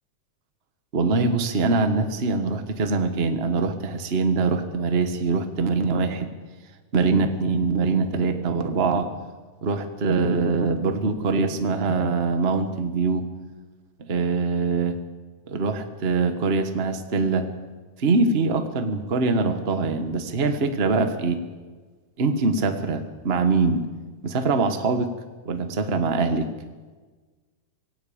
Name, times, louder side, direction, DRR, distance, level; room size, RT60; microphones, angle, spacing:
voice 1, 0.9-6.3 6.9-9.1 9.6-13.3 14.0-15.0 15.5-17.5 18.0-21.4 22.2-23.8 24.2-25.1 25.4-26.5, right 4 dB, 80° right, 7 dB, 0.5 m, -23 dB
19.5 x 16.5 x 8.6 m, 1.4 s
omnidirectional pair, 3.5 m